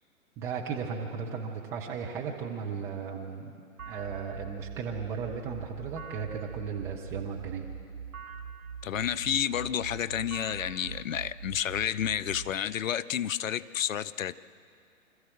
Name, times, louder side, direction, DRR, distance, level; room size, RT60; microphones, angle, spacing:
voice 1, 0.4-7.6, right 6 dB, 5° right, 0.4 m, -36 dB
sound 1, 3.8-12.5, right 6 dB, 85° right, 1.6 m, -43 dB
voice 2, 8.8-14.3, left 10 dB, 70° left, 0.7 m, -30 dB
25.5 x 14.0 x 7.7 m
hypercardioid pair, 125°, 41 cm